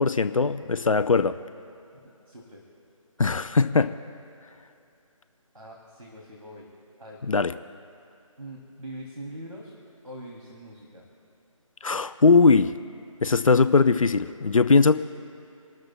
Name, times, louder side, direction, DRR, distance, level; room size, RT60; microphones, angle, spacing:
voice 1, 0.0-1.4 3.2-3.9 7.3-7.5 11.8-12.7 13.2-15.0, left 4 dB, 70° left, 11 dB, 0.6 m, -20 dB
voice 2, 2.3-2.6 5.5-6.7 7.0-7.2 8.4-9.7 10.0-11.0, right 1 dB, 90° right, -2 dB, 2.8 m, -42 dB
28.5 x 13.5 x 2.3 m, 2.6 s
figure-of-eight pair, 155°, 18 cm